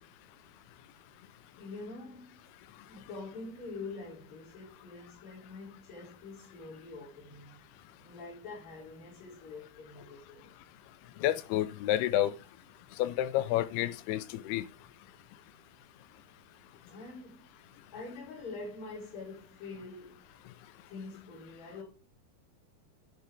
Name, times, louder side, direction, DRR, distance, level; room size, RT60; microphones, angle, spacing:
voice 1, 1.6-2.4 2.9-7.6 8.0-10.5 16.9-17.5 17.9-20.3 20.9-21.8, left 3 dB, 65° left, 5.0 m, -45 dB
voice 2, 11.2-12.3 13.0-14.6, left 13 dB, 90° left, 2.7 m, -29 dB
10.0 x 6.8 x 3.6 m
omnidirectional pair, 4.5 m